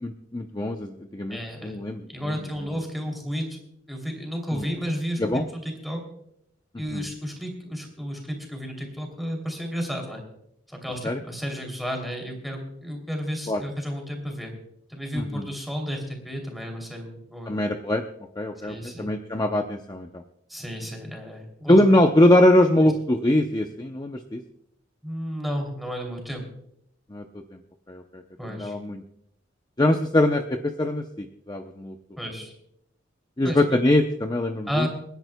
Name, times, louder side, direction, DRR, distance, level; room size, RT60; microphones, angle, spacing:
voice 1, 0.0-2.4 4.5-4.7 5.2-5.4 6.9-7.0 11.0-11.2 13.5-13.6 15.1-15.5 17.5-18.0 18.4-20.2 21.7-24.4 27.1-27.3 27.9-28.2 28.5-29.0 29.8-32.0 33.4-34.9, left 1 dB, 20° left, 5 dB, 0.6 m, -22 dB
voice 2, 1.3-1.8 2.1-3.6 3.9-6.0 6.8-10.2 10.7-14.5 14.9-17.5 18.6-19.1 20.5-21.8 25.0-26.4 28.4-28.8 32.2-32.5 33.4-33.6 34.7-34.9, equal, ahead, 1 dB, 2.9 m, -32 dB
29.5 x 10.5 x 2.2 m, 0.74 s
head